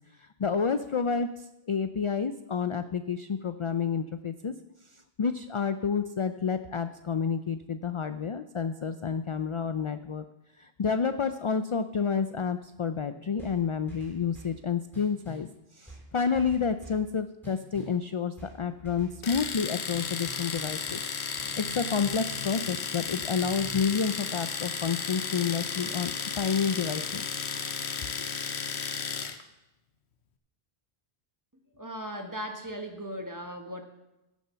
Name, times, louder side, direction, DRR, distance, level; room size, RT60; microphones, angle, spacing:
voice 1, 0.2-4.5 4.9-10.2 10.6-15.5 15.7-21.0 21.6-27.2, left 6 dB, 50° left, 10 dB, 0.3 m, -29 dB
sound 1, 13.4-14.6 14.9-15.5 15.9-17.1 17.4-18.0 18.4-19.6 19.9-23.9, equal, ahead, 3.7 m, -47 dB
Domestic sounds home sounds, 19.2-29.4, left 6 dB, 90° left, 1.2 m, -34 dB
voice 2, 31.8-33.8, equal, 20° right, 4 dB, 1.2 m, -37 dB
15.5 x 7.2 x 5.7 m, 0.95 s
omnidirectional pair, 1.1 m